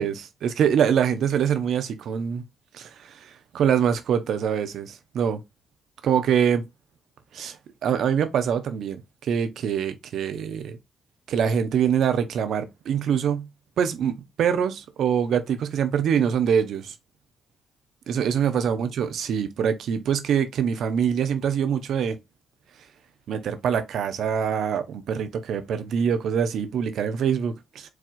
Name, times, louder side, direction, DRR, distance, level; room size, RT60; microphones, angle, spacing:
voice 1, 0.0-2.4 2.7-5.4 6.0-6.6 7.3-7.6 7.8-10.8 11.3-13.5 13.8-16.9 18.1-22.2 23.3-27.9, right 8 dB, 70° right, 0.7 m, -24 dB
4.7 x 3.5 x 2.5 m
hypercardioid pair, 50°, 0 cm